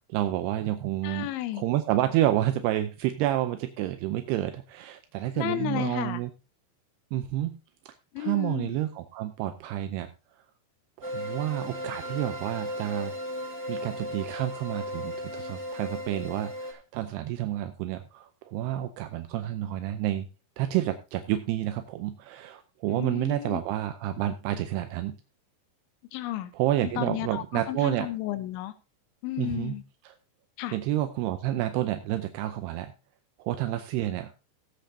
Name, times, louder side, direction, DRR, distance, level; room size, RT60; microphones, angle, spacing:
voice 1, 0.1-1.3 1.6-6.3 7.1-7.6 7.9-10.1 11.0-13.1 13.7-20.3 20.6-25.2 26.5-28.1 29.4-29.7 30.1-30.2 30.7-32.9 33.4-34.3, right 13 dB, 85° right, 8 dB, 2.4 m, -29 dB
voice 2, 1.0-1.6 5.3-6.2 8.1-8.8 22.9-23.6 26.1-26.5 26.8-28.7 29.2-29.8 30.6-30.8, left 14 dB, 85° left, 12 dB, 3.2 m, -33 dB
sound 1, 11.0-16.7, equal, 15° left, 0.4 m, -36 dB
18.0 x 8.0 x 2.7 m, 0.28 s
omnidirectional pair, 5.3 m